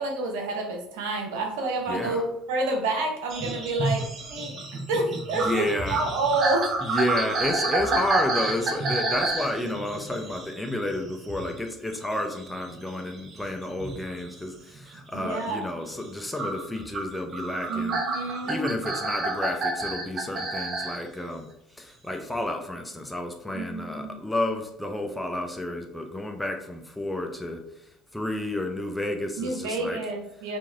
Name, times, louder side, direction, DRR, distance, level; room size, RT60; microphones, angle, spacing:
voice 1, 0.0-4.5 4.9-6.7 15.1-15.7 17.7-18.7 23.5-24.1 29.4-30.6, right 2 dB, 80° right, 2 dB, 0.8 m, -29 dB
voice 2, 1.9-2.2 5.4-6.0 6.8-18.0 18.5-21.5 21.8-27.6 28.1-30.0, left 1 dB, 5° left, 4 dB, 0.7 m, -31 dB
sound 1, 3.3-11.6 11.9-14.3 14.8-15.2 16.4-21.0 22.3-22.4, right 2 dB, 50° right, 0.7 m, -29 dB
2.9 x 2.7 x 3.9 m, 0.77 s
hypercardioid pair, 70°, 0 cm